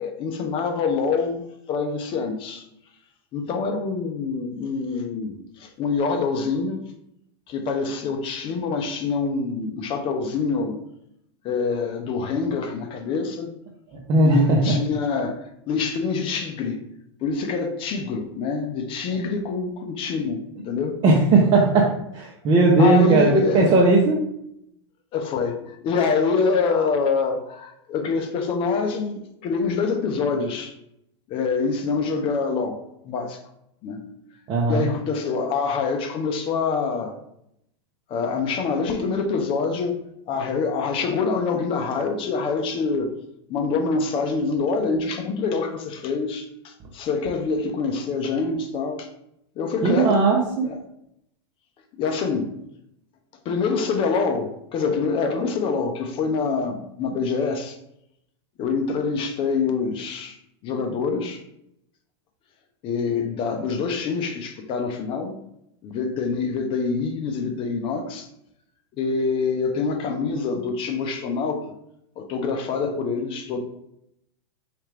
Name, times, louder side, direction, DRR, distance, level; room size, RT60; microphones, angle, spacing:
voice 1, 0.0-1.4 1.7-2.6 3.3-6.8 7.5-10.8 11.4-13.5 14.2-16.8 17.2-21.0 22.8-23.8 25.1-30.7 31.3-32.8 33.0-33.4 33.8-34.1 34.7-37.2 38.1-40.0 40.3-43.1 43.5-49.1 49.6-50.2 50.6-50.8 52.0-52.6 53.4-57.8 58.6-60.4 60.6-61.4 62.8-65.4 65.8-68.3 69.0-71.6 72.2-73.6, left 4 dB, 40° left, 5 dB, 0.6 m, -25 dB
voice 2, 14.1-14.8 21.0-24.2 34.5-34.9 49.8-50.7, right 3 dB, 35° right, -2 dB, 0.7 m, -18 dB
4.2 x 2.5 x 3.3 m, 0.77 s
hypercardioid pair, 115°, 14 cm